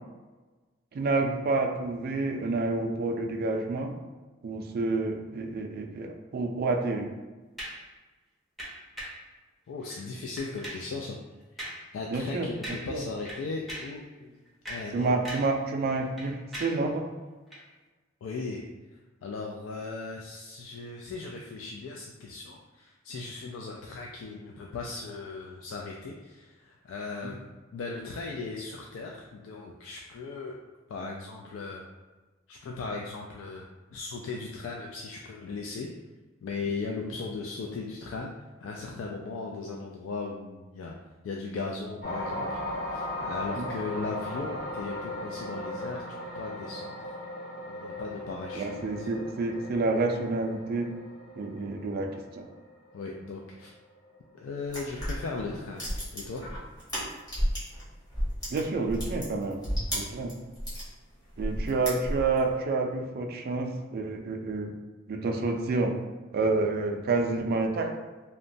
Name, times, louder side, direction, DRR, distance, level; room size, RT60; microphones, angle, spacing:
voice 1, 0.9-3.9 4.4-7.1 12.1-12.5 12.9-13.0 14.9-17.0 27.2-27.3 43.6-43.7 48.6-50.9 51.4-52.1 52.4-52.5 58.5-59.6 59.9-60.3 61.4-64.7 65.1-65.9 66.3-67.9, right 3 dB, 50° right, 3 dB, 0.3 m, -29 dB
sound 1, 7.6-7.9 8.6-9.3 9.8-10.0 10.4-10.9 11.6-11.9 12.2-12.3 12.6-13.0 13.3-14.0 14.5-15.6 15.9-16.9 17.5-17.6, equal, ahead, 0.6 m, -40 dB
voice 2, 9.7-11.2 11.5-14.4 14.7-15.1 18.2-18.6 19.2-30.5 30.9-31.8 32.5-33.6 33.9-35.9 36.4-38.3 38.6-41.0 41.2-47.1 47.7-49.1 52.9-53.7 54.3-56.4, left 3 dB, 85° left, -1 dB, 0.3 m, -37 dB
sound 2, 42.0-54.4 54.8-55.1, left 1 dB, 45° left, 1.0 m, -38 dB
sound 3, 54.7-57.8 58.1-60.9 61.3-62.4, equal, 20° left, 1.0 m, -32 dB
2.9 x 2.1 x 2.6 m, 1.3 s
head